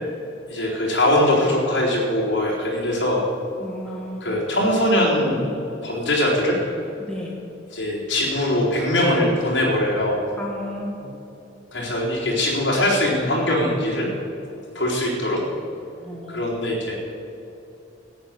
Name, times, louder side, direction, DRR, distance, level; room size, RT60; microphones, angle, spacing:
voice 1, 0.5-3.2 4.2-6.6 7.7-10.2 11.7-14.1 14.7-15.4 16.3-17.0, left 1 dB, 65° left, -4 dB, 3.9 m, -21 dB
voice 2, 3.6-4.3 7.0-7.4 10.4-11.1 16.0-16.5, equal, 5° left, -3 dB, 1.6 m, -33 dB
13.5 x 9.3 x 6.8 m, 2.8 s
head